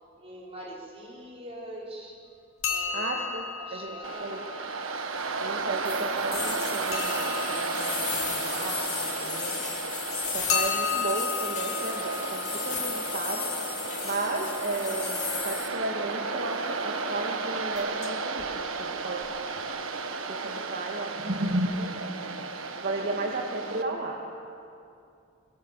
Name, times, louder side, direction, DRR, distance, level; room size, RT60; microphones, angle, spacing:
voice 1, 0.2-2.1 2.7-3.2 3.6-4.6 20.4-20.7 23.0-23.2, right 1 dB, 30° right, -5 dB, 5.6 m, -43 dB
sound 1, 2.6-5.3 6.9-9.6 10.5-14.3 17.8-18.1 18.4-18.5 19.2-19.3 19.6-19.7, left 6 dB, 85° left, 3.6 m, -35 dB
voice 2, 2.9-3.4 3.7-4.4 5.4-9.8 10.3-13.6 14.0-19.3 20.3-22.2 22.8-24.2, right 2 dB, 50° right, 0 dB, 1.9 m, -34 dB
Waves surf, 4.0-23.8, right 4 dB, 75° right, 1.4 m, -33 dB
sound 2, 5.8-15.7, left 7 dB, 35° left, 2.6 m, -35 dB
24.0 x 22.5 x 7.8 m, 2.5 s
head